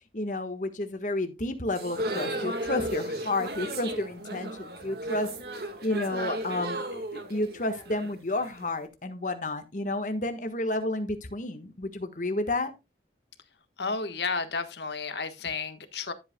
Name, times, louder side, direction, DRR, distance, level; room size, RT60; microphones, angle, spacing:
voice 1, 0.1-5.3 5.8-12.7, left 2 dB, 45° left, 1.4 m, -31 dB
sound 1, 1.7-8.7, right 1 dB, 55° right, 1.7 m, -35 dB
voice 2, 13.8-16.1, left 4 dB, 70° left, 1.3 m, -32 dB
12.5 x 8.2 x 2.2 m
head